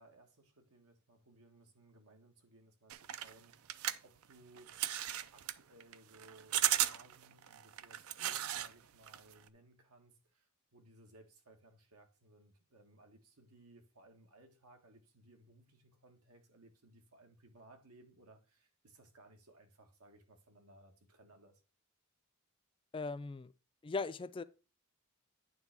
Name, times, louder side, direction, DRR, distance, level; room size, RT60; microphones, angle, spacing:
voice 1, 0.0-4.7 5.3-21.6, right 2 dB, 85° right, 1.6 m, -62 dB
sound 1, 2.9-8.7 9.0-9.5, right 12 dB, 70° right, 0.5 m, -36 dB
voice 2, 22.9-23.5 23.8-24.4, left 4 dB, 25° left, 0.3 m, -39 dB
9.3 x 3.3 x 5.9 m
head